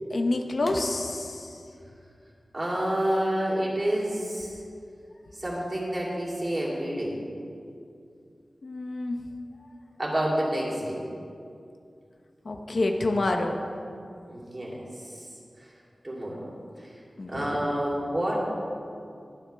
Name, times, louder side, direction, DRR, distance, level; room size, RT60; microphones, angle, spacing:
voice 1, 0.1-1.6 8.6-9.3 12.4-13.6 17.2-17.7, left 2 dB, 60° left, 4 dB, 0.8 m, -28 dB
voice 2, 2.5-4.5 5.4-7.2 10.0-11.0 14.3-14.8 16.0-16.4 17.3-18.4, right 1 dB, 30° right, -5 dB, 3.0 m, -28 dB
22.0 x 7.4 x 3.4 m, 2.4 s
wide cardioid pair, 95°, 0 cm